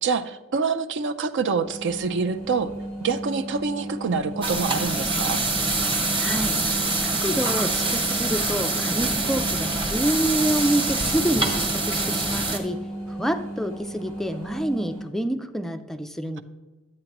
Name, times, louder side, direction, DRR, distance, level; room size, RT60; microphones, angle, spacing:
voice 1, 0.0-2.7 3.0-5.4, right 5 dB, 60° right, 10 dB, 0.5 m, -26 dB
sound 1, 1.5-15.1, right 1 dB, 80° right, 1.5 m, -35 dB
sound 2, 4.4-12.6, right 3 dB, 25° right, 1.2 m, -25 dB
voice 2, 6.1-6.6 7.0-12.8 13.1-16.4, right 1 dB, ahead, 7 dB, 0.4 m, -27 dB
10.5 x 8.6 x 2.9 m, 1.2 s
head